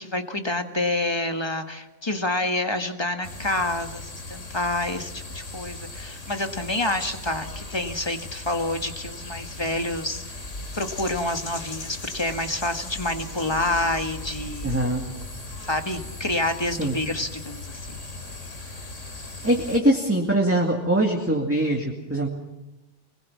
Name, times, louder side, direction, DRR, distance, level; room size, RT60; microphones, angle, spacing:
voice 1, 0.0-10.5 10.8-14.8 15.6-18.0, left 2 dB, 20° left, 5 dB, 1.7 m, -28 dB
sound 1, 3.2-19.8, left 2 dB, 85° left, 3.2 m, -37 dB
voice 2, 14.6-15.0 16.8-16.9 19.4-22.3, right 1 dB, 10° right, -1 dB, 2.2 m, -22 dB
25.0 x 20.5 x 7.3 m, 1.0 s
omnidirectional pair, 1.2 m